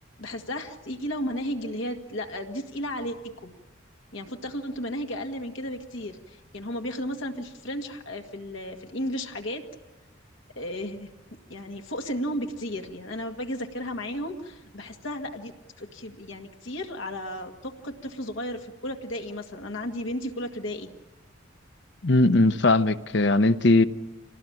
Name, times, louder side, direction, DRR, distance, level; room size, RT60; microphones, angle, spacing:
voice 1, 0.2-3.5 4.1-9.6 10.6-11.1 11.5-15.5 15.8-20.9, equal, 80° left, 1.9 m, -34 dB
voice 2, 22.0-23.8, left 2 dB, 60° left, 0.8 m, -19 dB
27.0 x 18.5 x 8.7 m
head